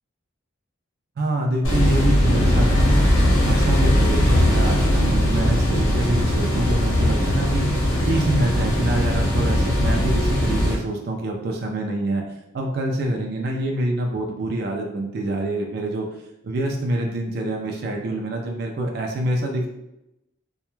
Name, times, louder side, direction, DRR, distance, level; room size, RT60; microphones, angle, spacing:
voice 1, 1.2-2.9 3.4-7.7 8.1-12.2 12.5-16.1 16.4-19.7, right 1 dB, 50° right, 1 dB, 0.3 m, -26 dB
sound 1, 1.6-10.7, equal, 70° left, 0.8 m, -19 dB
2.2 x 2.1 x 3.0 m, 0.87 s
head